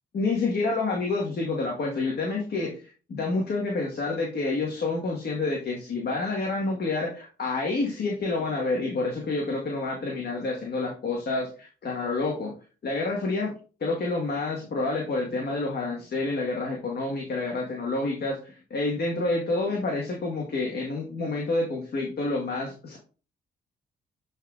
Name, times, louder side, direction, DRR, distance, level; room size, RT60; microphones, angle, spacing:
voice 1, 0.1-12.5 12.8-13.5 13.8-23.0, left 3 dB, 50° left, -1 dB, 1.5 m, -28 dB
11.5 x 3.9 x 2.4 m, 0.36 s
supercardioid pair, 55°, 21 cm